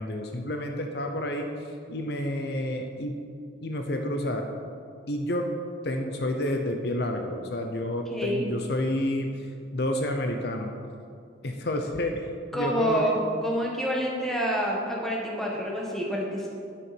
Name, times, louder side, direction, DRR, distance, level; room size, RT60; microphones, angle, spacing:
voice 1, 0.0-3.1 3.6-4.5 5.1-5.5 5.8-10.7 11.4-13.1, left 1 dB, 55° left, 4 dB, 0.7 m, -30 dB
voice 2, 8.1-8.4 12.5-13.1 13.4-16.5, equal, ahead, -3 dB, 1.6 m, -28 dB
9.6 x 7.7 x 6.2 m, 2.4 s
head